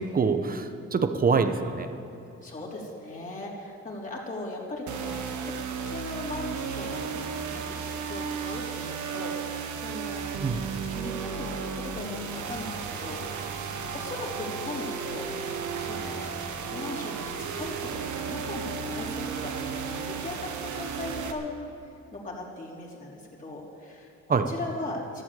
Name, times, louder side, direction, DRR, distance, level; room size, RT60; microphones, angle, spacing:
voice 1, 0.0-1.9 10.4-10.6 24.3-24.4, right 5 dB, 30° right, 8 dB, 1.0 m, -25 dB
voice 2, 2.4-5.5 5.8-13.6 13.9-15.3 15.8-16.3 16.7-21.6 21.8-25.2, left 2 dB, 25° left, -4 dB, 3.8 m, -39 dB
sound 1, 4.9-21.3, right 6 dB, 75° right, 1.3 m, -34 dB
12.5 x 12.0 x 8.5 m, 2.7 s
cardioid pair, 90°, 30 cm